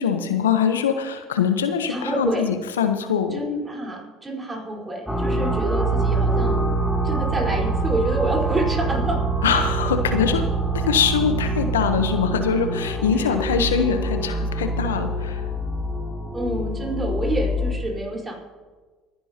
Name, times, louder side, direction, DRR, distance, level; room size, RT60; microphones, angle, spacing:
voice 1, 0.0-3.4 9.4-10.4 10.7-15.4, left 7 dB, 90° left, 8 dB, 0.9 m, -23 dB
voice 2, 1.9-2.5 3.3-6.7 7.0-9.2 9.8-9.9 13.1-13.4 16.3-18.3, right 1 dB, 20° right, -1 dB, 4.5 m, -28 dB
sound 1, 5.1-17.7, right 2 dB, ahead, 2.4 m, -25 dB
24.0 x 10.5 x 2.9 m, 1.4 s
hypercardioid pair, 70°, 0 cm